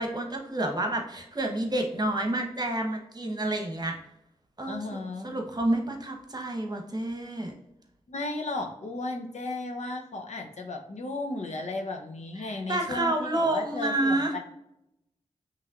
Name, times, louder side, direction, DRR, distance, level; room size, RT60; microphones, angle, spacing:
voice 1, 0.0-4.0 4.6-7.5 12.4-14.3, right 1 dB, 35° right, 3 dB, 1.0 m, -29 dB
voice 2, 4.7-5.3 8.1-14.4, left 2 dB, 65° left, 2 dB, 0.8 m, -35 dB
5.6 x 3.1 x 2.5 m, 0.82 s
cardioid pair, 40°, 13 cm